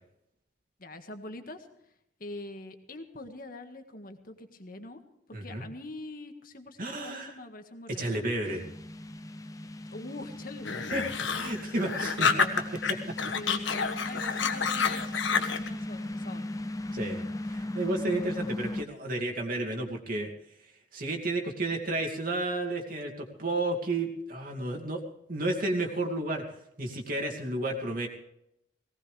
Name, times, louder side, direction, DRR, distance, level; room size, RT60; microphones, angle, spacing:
voice 1, 0.8-1.7 2.2-5.0 5.3-8.2 9.9-11.1 12.0-12.5 13.3-16.5, left 2 dB, 50° left, 6 dB, 1.7 m, -43 dB
voice 2, 5.3-5.7 6.8-7.3 7.9-8.6 10.9-11.0 11.3-12.3 13.1-13.2 16.9-17.2 17.5-20.3 20.9-25.0 25.3-26.4 26.8-28.1, right 2 dB, 50° right, 1 dB, 2.5 m, -32 dB
sound 1, 8.4-18.8, left 1 dB, 20° left, 0.7 m, -38 dB
sound 2, 10.6-12.9 13.2-15.7, left 6 dB, 90° left, 1.4 m, -28 dB
19.0 x 18.5 x 3.4 m, 0.77 s
head